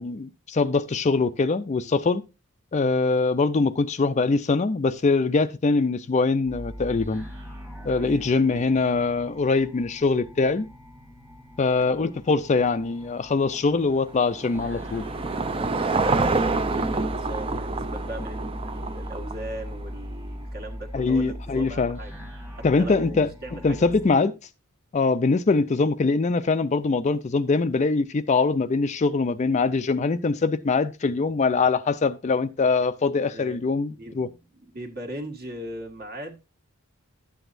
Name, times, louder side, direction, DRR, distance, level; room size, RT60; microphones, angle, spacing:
voice 1, 0.0-2.2 2.7-7.2 7.8-10.7 11.6-15.0 20.9-22.0 22.6-23.3 23.6-24.3 24.9-34.3, left 4 dB, 35° left, 0.4 m, -23 dB
sound 1, 6.5-24.1, equal, 10° right, 1.4 m, -39 dB
voice 2, 7.8-8.7 11.8-12.2 15.4-22.2 22.5-23.9 24.2-24.3 33.3-36.4, equal, 45° right, 1.5 m, -39 dB
Car passing by / Engine, 13.5-20.0, right 3 dB, 25° right, 0.5 m, -28 dB
11.0 x 8.0 x 2.6 m
head